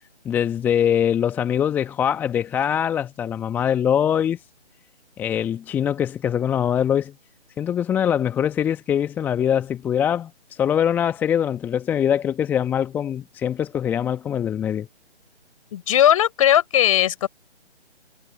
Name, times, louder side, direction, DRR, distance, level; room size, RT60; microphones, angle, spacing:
voice 1, 0.2-4.4 5.2-7.1 7.6-14.9, left 9 dB, 5° left, 1.3 m, -23 dB
voice 2, 15.7-17.3, left 11 dB, 30° left, 4.9 m, -18 dB
figure-of-eight pair, 145°, 35 cm